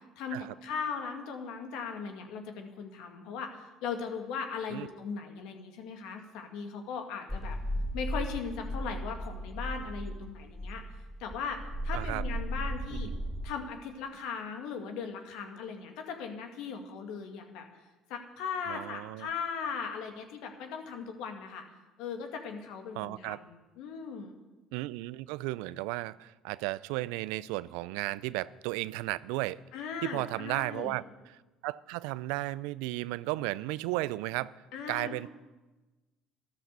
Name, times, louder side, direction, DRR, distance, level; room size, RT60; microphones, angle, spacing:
voice 1, 0.2-7.6 7.9-10.8 11.2-13.1 13.4-17.7 18.1-21.6 22.0-24.4 29.7-30.9 34.7-35.3, left 6 dB, 70° left, 2.1 m, -38 dB
sound 1, 7.3-13.5, equal, ahead, 1.2 m, -36 dB
voice 2, 11.9-12.2 12.9-13.1 18.7-19.3 22.9-23.4 24.7-29.6 30.0-34.6 34.9-35.3, right 19 dB, 75° right, 0.4 m, -34 dB
13.0 x 12.5 x 6.9 m
hypercardioid pair, 65°, 0 cm